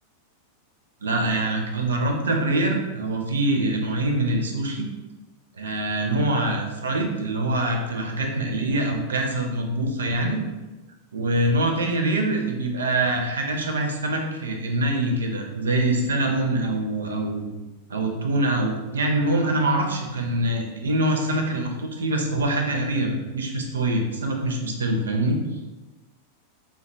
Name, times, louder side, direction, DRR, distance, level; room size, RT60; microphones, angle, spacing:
voice 1, 1.0-4.9 5.6-10.4 11.1-17.5 17.9-25.4, right 1 dB, 70° right, 3 dB, 0.5 m, -24 dB
3.7 x 2.2 x 2.6 m, 1.1 s
figure-of-eight pair, 90°, 0 cm